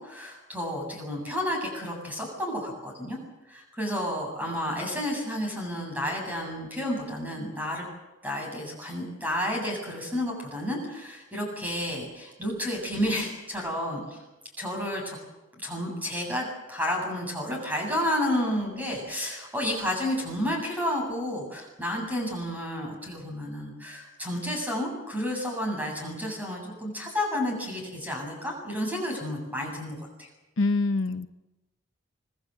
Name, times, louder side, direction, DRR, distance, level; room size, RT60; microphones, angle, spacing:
voice 1, 0.0-3.2 3.5-7.8 8.2-14.2 14.6-15.2 15.6-30.3, left 1 dB, 10° right, 0 dB, 7.7 m, -31 dB
voice 2, 30.6-31.3, left 3 dB, 75° left, 11 dB, 0.8 m, -25 dB
26.0 x 20.0 x 7.9 m, 1.0 s
head